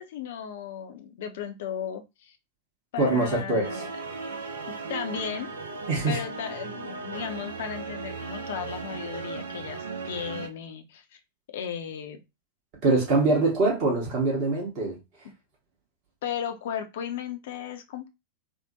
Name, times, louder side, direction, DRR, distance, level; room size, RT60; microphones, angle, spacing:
voice 1, 0.0-2.4 2.9-3.9 4.6-5.5 6.1-11.0 11.5-12.2 16.2-18.1, left 8 dB, 55° left, 0.5 m, -35 dB
voice 2, 3.0-3.8 5.9-6.2 12.8-15.0, right 3 dB, 45° right, 1.2 m, -24 dB
sound 1, 3.6-10.5, right 4 dB, 70° right, 0.6 m, -37 dB
3.5 x 2.1 x 2.7 m
figure-of-eight pair, 90°, 0 cm